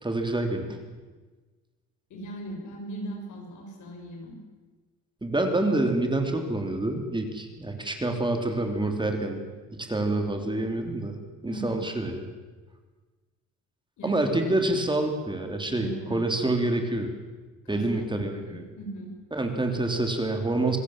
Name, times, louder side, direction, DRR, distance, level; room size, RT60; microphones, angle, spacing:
voice 1, 0.0-0.8 5.2-9.4 9.8-11.2 11.4-12.3 14.0-17.1 17.7-18.6 19.3-20.8, right 2 dB, 15° right, 4 dB, 3.5 m, -27 dB
voice 2, 2.1-4.4 11.5-11.8 14.0-14.2 15.8-16.2 17.6-17.8 18.1-18.2 18.5-19.1, right 1 dB, 75° left, 1 dB, 7.0 m, -38 dB
26.0 x 16.5 x 7.6 m, 1.3 s
cardioid pair, 90°, 30 cm